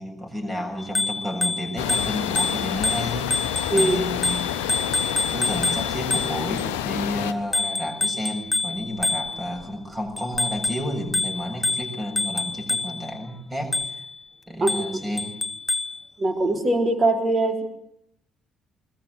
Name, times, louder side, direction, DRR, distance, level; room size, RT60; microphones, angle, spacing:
voice 1, 0.0-4.8 5.3-14.1 14.5-15.3, equal, 15° right, 4 dB, 7.3 m, -31 dB
Bicycle bell, 0.8-6.6 7.5-9.6 10.2-13.1 13.7-14.1 14.7-16.0, left 3 dB, 25° left, 1.2 m, -27 dB
sound 1, 1.8-7.3, left 11 dB, 70° left, 1.1 m, -28 dB
voice 2, 16.2-17.6, right 2 dB, 35° right, 6 dB, 3.9 m, -21 dB
21.5 x 20.5 x 8.1 m, 0.71 s
figure-of-eight pair, 45°, 0 cm